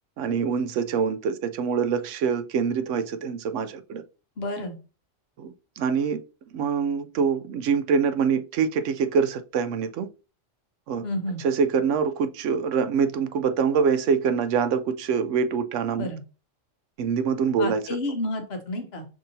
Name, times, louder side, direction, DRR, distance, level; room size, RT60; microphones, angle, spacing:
voice 1, 0.2-4.0 5.4-6.2 6.5-10.1 10.9-11.0 11.4-16.1 17.0-17.8, right 6 dB, 80° right, 0.9 m, -25 dB
voice 2, 4.4-4.8 11.0-11.4 16.0-16.2 17.6-19.1, left 1 dB, 60° left, 1.2 m, -30 dB
6.0 x 2.8 x 2.7 m
omnidirectional pair, 1.3 m